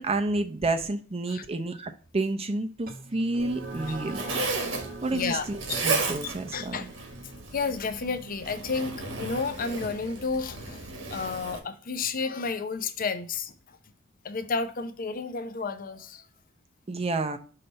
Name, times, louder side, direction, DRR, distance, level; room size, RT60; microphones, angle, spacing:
voice 1, 0.0-4.2 5.0-6.8 16.9-17.4, right 2 dB, 30° right, 0.6 m, -30 dB
sound 1, 2.9-11.7, right 2 dB, 45° right, 1.1 m, -44 dB
Zipper (clothing), 3.4-11.6, right 3 dB, 70° right, 1.3 m, -34 dB
voice 2, 5.1-5.9 6.2-6.9 7.5-13.8 14.2-16.3, left 4 dB, 45° left, 0.6 m, -32 dB
5.7 x 3.3 x 5.2 m
head